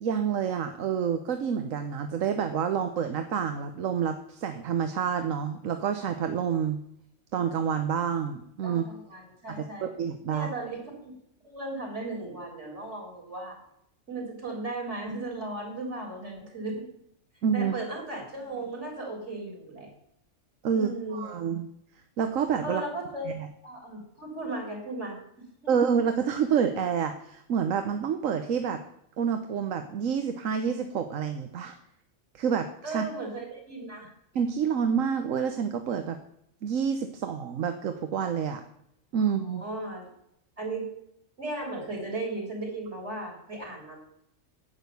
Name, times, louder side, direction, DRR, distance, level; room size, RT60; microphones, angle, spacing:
voice 1, 0.0-6.8 7.3-8.9 9.5-10.5 17.4-17.7 20.6-21.7 22.2-22.8 23.3-23.5 25.7-28.8 29.2-31.7 32.3-33.1 34.3-36.2 36.6-38.6 39.1-39.6, right 7 dB, 90° right, 7 dB, 1.3 m, -28 dB
voice 2, 8.6-9.9 10.3-11.1 11.4-13.6 14.1-16.9 17.5-19.9 20.7-21.3 22.6-23.3 23.6-25.5 32.8-34.1 39.4-40.1 40.6-40.9 41.4-44.0, right 2 dB, 60° right, 1 dB, 4.3 m, -36 dB
10.5 x 8.3 x 6.9 m, 0.74 s
omnidirectional pair, 1.3 m